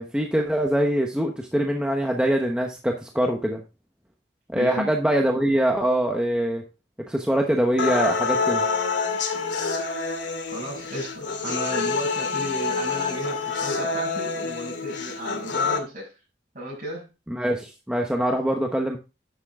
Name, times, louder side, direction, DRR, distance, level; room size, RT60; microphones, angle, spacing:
voice 1, 0.0-3.6 4.5-6.6 7.1-8.6 17.3-19.0, right 1 dB, 5° right, 2 dB, 1.0 m, -23 dB
voice 2, 4.5-4.9 10.5-16.1 16.5-17.1, right 1 dB, 50° right, -6 dB, 6.6 m, -34 dB
sound 1, 7.8-15.8, left 4 dB, 90° left, 2.1 m, -27 dB
10.5 x 7.3 x 3.6 m, 0.29 s
head